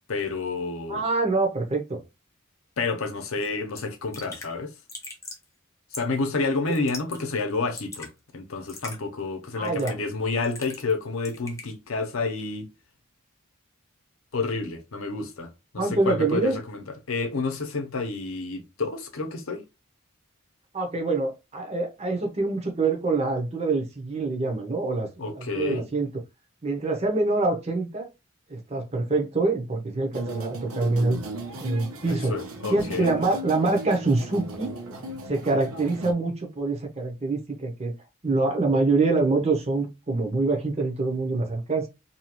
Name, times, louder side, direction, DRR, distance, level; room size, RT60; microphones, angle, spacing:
voice 1, 0.1-1.0 2.8-4.7 5.9-12.7 14.3-15.5 15.7-19.6 25.2-25.8 32.0-33.1, left 3 dB, 75° left, 0.7 m, -29 dB
voice 2, 0.9-2.0 9.6-9.9 15.8-16.6 20.7-26.1 26.6-28.1 28.5-31.2 31.6-32.3 32.7-34.7 35.3-37.9 38.2-41.9, right 3 dB, 30° right, 0.7 m, -25 dB
Raindrop / Drip, 3.4-3.5 3.8-3.9 4.1-4.5 4.9-5.4 5.9-6.2 6.7-7.2 7.5-8.1 8.7-9.0 9.6-10.1 10.4-11.0 11.2-11.7, left 3 dB, 15° left, 0.6 m, -40 dB
sound 1, 30.1-36.1, right 2 dB, 85° right, 0.7 m, -37 dB
2.7 x 2.4 x 2.9 m
head